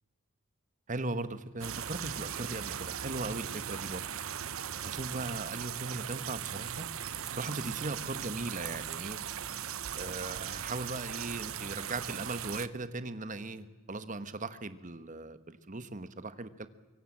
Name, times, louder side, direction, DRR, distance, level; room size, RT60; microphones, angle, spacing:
voice 1, 0.9-4.0 4.8-6.9 7.3-9.2 9.9-16.7, right 2 dB, 35° right, 12 dB, 1.3 m, -38 dB
sound 1, 1.6-12.7, right 9 dB, 80° right, 0.9 m, -39 dB
25.0 x 23.0 x 7.4 m, 1.3 s
head